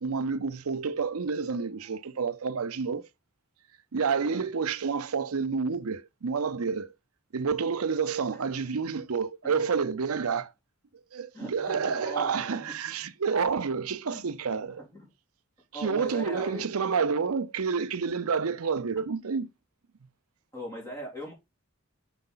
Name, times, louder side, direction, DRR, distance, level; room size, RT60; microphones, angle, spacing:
voice 1, 0.0-3.1 3.9-6.9 7.3-10.5 11.1-14.8 15.7-19.5, right 5 dB, 90° right, 0.6 m, -29 dB
voice 2, 4.2-4.5 8.3-8.7 9.4-9.6 10.3-10.4 11.3-12.8 14.0-15.1 15.7-16.7 20.5-21.3, right 1 dB, 15° left, 3.6 m, -41 dB
6.5 x 5.0 x 3.9 m
head